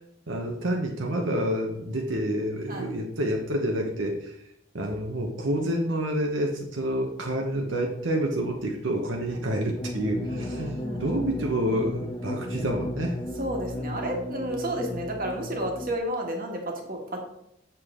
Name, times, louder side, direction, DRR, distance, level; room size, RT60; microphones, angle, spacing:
voice 1, 0.3-4.4 4.7-13.2, right 1 dB, 85° right, 1 dB, 1.1 m, -28 dB
sound 1, 9.7-16.0, left 1 dB, 25° left, 0.5 m, -35 dB
voice 2, 10.3-11.2 13.4-17.2, right 1 dB, 50° right, 1 dB, 1.6 m, -32 dB
7.4 x 6.5 x 3.7 m, 0.77 s
head